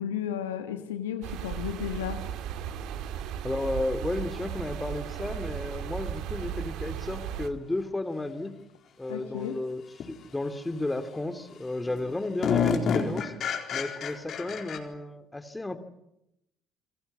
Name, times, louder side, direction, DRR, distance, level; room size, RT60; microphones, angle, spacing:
voice 1, 0.0-2.2 9.1-9.6, left 9 dB, 85° left, 7 dB, 1.6 m, -33 dB
sound 1, 1.2-7.5, right 10 dB, 65° right, 2.0 m, -35 dB
voice 2, 3.4-8.6 9.0-9.8 10.1-13.3 13.7-15.8, left 2 dB, 15° left, 10 dB, 2.9 m, -33 dB
sound 2, 7.1-7.2 10.0-10.1 10.6-11.1 11.5-11.6 11.9-14.8, left 6 dB, 55° left, 4.2 m, -29 dB
29.0 x 22.5 x 8.5 m, 0.85 s
hypercardioid pair, 55°, 0 cm